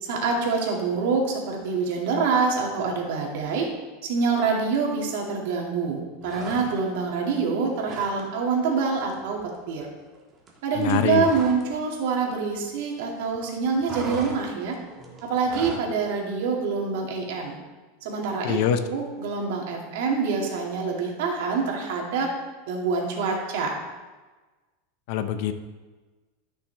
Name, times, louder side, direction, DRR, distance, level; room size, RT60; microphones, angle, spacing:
voice 1, 0.0-3.7 4.0-9.4 9.7-9.9 10.6-14.8 15.2-17.6 18.0-18.6 18.9-22.3 22.7-23.8, right 5 dB, 65° right, -1 dB, 2.1 m, -26 dB
sound 1, 6.2-7.0 7.4-8.2 8.5-8.7 9.0-11.7 12.0-13.1 13.3-15.9, right 2 dB, 20° right, 1.5 m, -39 dB
voice 2, 10.8-11.3 18.4-18.8 25.1-25.5, left 9 dB, 55° left, 9 dB, 0.6 m, -24 dB
13.0 x 6.1 x 3.3 m, 1.3 s
supercardioid pair, 155°, 0 cm